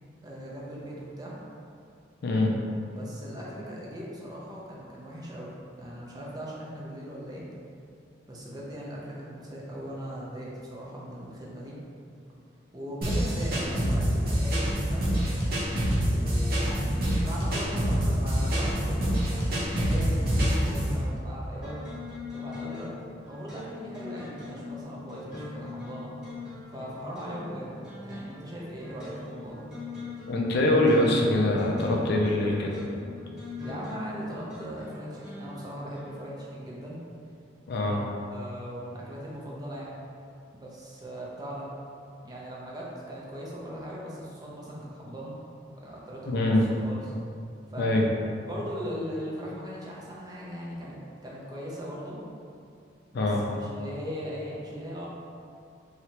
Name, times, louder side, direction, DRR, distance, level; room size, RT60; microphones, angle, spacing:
voice 1, 0.2-1.3 2.9-7.4 8.3-11.8 12.7-15.1 16.0-21.8 22.3-23.0 23.3-26.1 26.7-29.6 33.6-37.0 38.0-39.9 40.5-41.7 42.2-45.3 45.7-46.6 46.8-47.1 47.7-47.9 48.4-52.2 53.1-55.1, equal, 20° right, -5 dB, 0.5 m, -39 dB
voice 2, 2.2-2.5 30.3-32.8 37.7-38.0 46.3-46.6 47.8-48.1 53.1-53.4, left 1 dB, 55° left, -1 dB, 0.4 m, -23 dB
sound 1, 13.0-21.0, equal, 50° right, 0.8 m, -26 dB
sound 2, 21.6-36.4, left 3 dB, 5° right, 1.1 m, -41 dB
3.2 x 2.8 x 2.8 m, 2.4 s
head